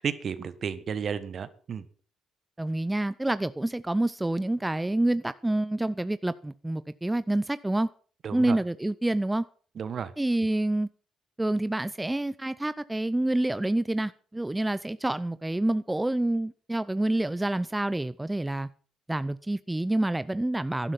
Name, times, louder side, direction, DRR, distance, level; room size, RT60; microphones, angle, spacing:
voice 1, 0.0-1.8 8.2-8.6 9.7-10.1, right 7 dB, 55° right, 1.3 m, -32 dB
voice 2, 2.6-7.9 8.3-9.4 10.2-10.9 11.4-18.7 19.1-20.9, right 1 dB, 10° right, 0.6 m, -27 dB
12.0 x 11.0 x 6.0 m
supercardioid pair, 60°, 0 cm